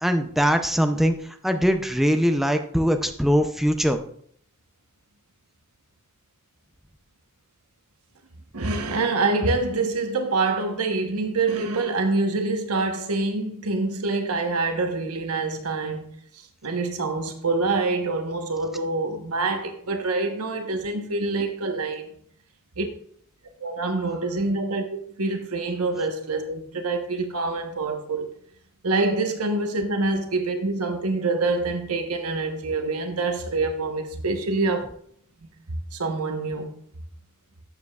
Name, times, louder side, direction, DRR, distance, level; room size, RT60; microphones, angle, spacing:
voice 1, 0.0-1.1 1.4-4.0, equal, ahead, 0.5 m, -21 dB
voice 2, 8.5-16.1 16.6-22.1 22.8-22.9 23.6-28.3 28.8-34.9 35.4-35.5 35.9-36.7, right 3 dB, 85° right, 1.1 m, -26 dB
12.0 x 7.5 x 2.4 m
head